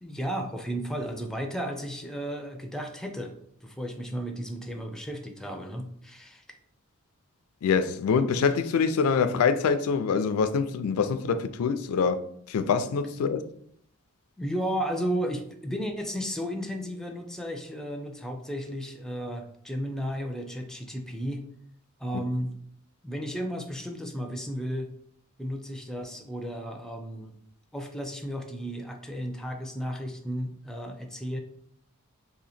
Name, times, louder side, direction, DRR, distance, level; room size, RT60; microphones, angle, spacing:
voice 1, 0.0-3.3 3.6-6.4 14.4-21.4 22.0-22.5 23.0-24.9 25.4-27.3 27.7-31.4, equal, 5° left, 0.4 m, -33 dB
voice 2, 7.6-12.2 12.5-13.4, left 5 dB, 80° left, 0.3 m, -25 dB
2.8 x 2.7 x 4.1 m
head